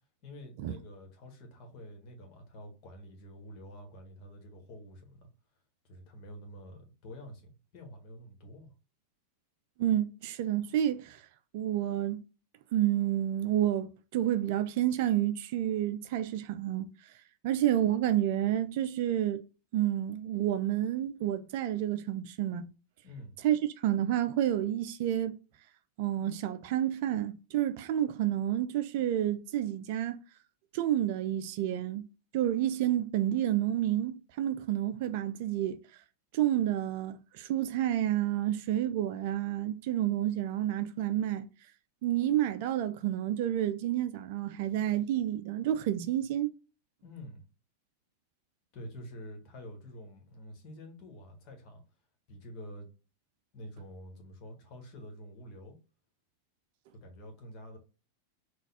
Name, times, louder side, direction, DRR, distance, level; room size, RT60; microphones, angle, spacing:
voice 1, 0.2-5.3 5.9-8.7 23.0-23.3 47.0-47.4 48.7-51.8 52.3-52.9 53.5-55.8 56.9-57.8, equal, 40° left, 1.5 m, -48 dB
voice 2, 9.8-11.3 11.5-12.2 12.7-16.9 17.4-19.4 19.7-22.7 23.4-25.4 26.0-30.2 30.7-32.0 32.3-35.8 36.3-41.5 42.0-46.5, right 12 dB, 50° right, 0.4 m, -29 dB
4.0 x 2.5 x 4.0 m
figure-of-eight pair, 90°, 0 cm